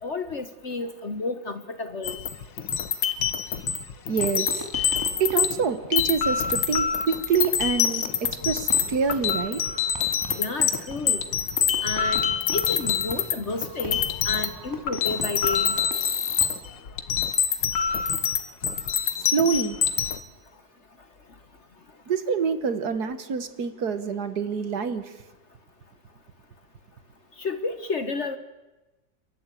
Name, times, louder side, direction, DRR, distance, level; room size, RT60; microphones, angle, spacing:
voice 1, 0.0-2.2 10.4-11.3 11.8-12.2 12.5-14.0 14.2-15.8 27.4-28.4, left 3 dB, 45° left, 10 dB, 1.2 m, -31 dB
sound 1, 2.0-5.7 5.9-13.4 13.6-20.2, left 8 dB, 80° left, 2.0 m, -25 dB
voice 2, 4.1-9.6 19.2-19.8 22.1-25.1, right 6 dB, 60° right, 11 dB, 1.7 m, -26 dB
Fireworks, 4.2-16.9, equal, 10° right, 2.3 m, -41 dB
29.5 x 13.5 x 9.1 m, 1.1 s
omnidirectional pair, 2.0 m